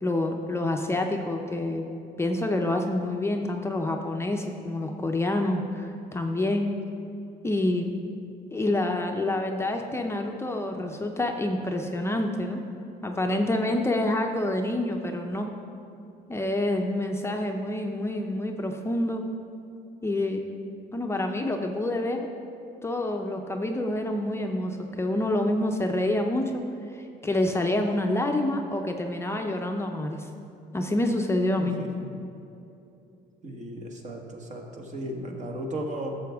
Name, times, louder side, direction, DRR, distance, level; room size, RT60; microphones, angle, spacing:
voice 1, 0.0-1.8 2.2-6.7 7.4-8.0 8.5-12.6 13.0-15.5 16.3-19.2 20.0-20.4 20.9-22.3 22.8-26.6 26.9-30.3 30.7-31.8, left 1 dB, 15° left, 3 dB, 0.6 m, -27 dB
voice 2, 31.6-32.2 33.4-36.2, right 1 dB, 45° right, 1 dB, 1.4 m, -35 dB
12.5 x 7.0 x 3.5 m, 2.7 s
cardioid pair, 110°, 17 cm